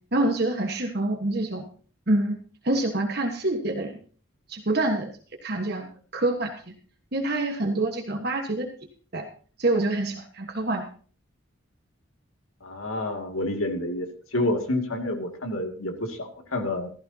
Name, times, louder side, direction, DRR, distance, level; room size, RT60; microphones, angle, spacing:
voice 1, 0.1-1.6 2.1-2.3 2.6-3.9 4.5-5.1 5.4-5.9 6.1-6.7 7.1-8.7 9.1-9.3 9.6-10.8, right 2 dB, 50° right, 3 dB, 1.5 m, -26 dB
voice 2, 12.6-16.9, left 1 dB, 85° left, 4 dB, 2.4 m, -29 dB
15.5 x 14.5 x 2.8 m, 0.42 s
head